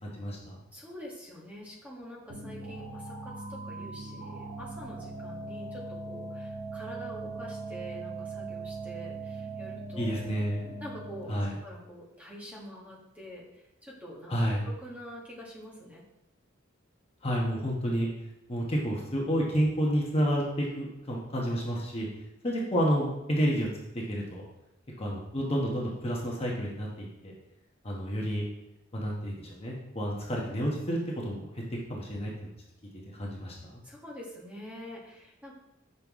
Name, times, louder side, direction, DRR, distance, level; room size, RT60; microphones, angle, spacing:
voice 1, 0.0-0.6 10.0-10.7 11.3-11.5 14.3-14.6 17.2-18.1 18.5-22.1 22.4-23.7 23.9-24.4 25.0-27.3 27.8-28.4 28.9-31.5 31.9-32.5 33.1-33.8, equal, 30° left, -2 dB, 1.1 m, -30 dB
voice 2, 0.7-10.3 10.8-14.4 14.6-16.0 33.8-35.6, equal, 10° right, -4 dB, 1.5 m, -46 dB
sound 1, 2.3-11.5, right 3 dB, 60° right, 1.4 m, -40 dB
6.6 x 5.4 x 3.6 m, 0.92 s
head